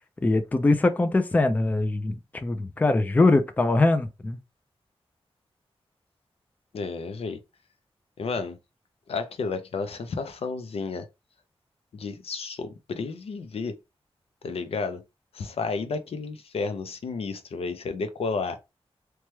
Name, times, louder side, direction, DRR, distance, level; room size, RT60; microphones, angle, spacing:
voice 1, 0.2-4.4, left 2 dB, 15° left, 0.3 m, -22 dB
voice 2, 6.7-7.4 8.2-8.6 9.1-11.1 11.9-13.7 14.4-15.0 15.3-18.6, left 4 dB, 75° left, 0.5 m, -31 dB
3.0 x 2.2 x 3.1 m
wide cardioid pair, 145°, 10 cm